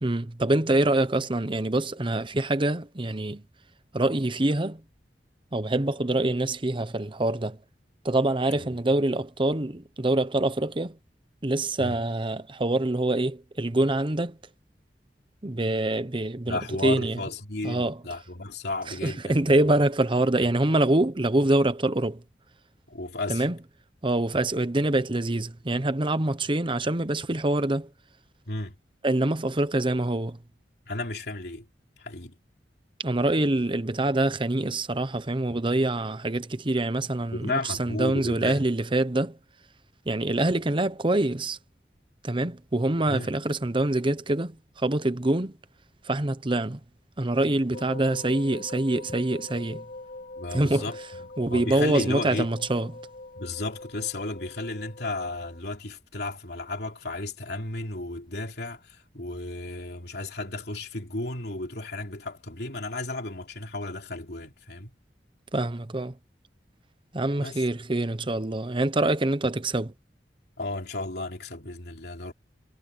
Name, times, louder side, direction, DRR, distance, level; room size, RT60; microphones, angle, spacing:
voice 1, 0.0-3.4 3.9-4.8 5.5-7.6 8.0-11.0 11.4-14.4 15.4-17.2 17.6-17.9 19.0-22.2 23.3-23.5 24.0-27.9 29.0-30.4 33.0-39.3 40.1-41.6 42.2-45.5 46.1-46.8 47.2-49.8 50.5-50.9 51.4-52.9 65.5-66.1 67.1-69.9, right 2 dB, 30° right, 1.0 m, -25 dB
voice 2, 16.5-19.6 20.4-20.5 22.9-23.4 28.5-28.7 30.9-31.7 32.0-32.3 37.3-38.6 43.1-43.3 50.3-52.5 53.3-64.9 67.4-67.6 70.6-72.3, left 2 dB, 70° left, 3.2 m, -34 dB
sound 1, 47.7-55.6, left 2 dB, 50° left, 5.3 m, -42 dB
head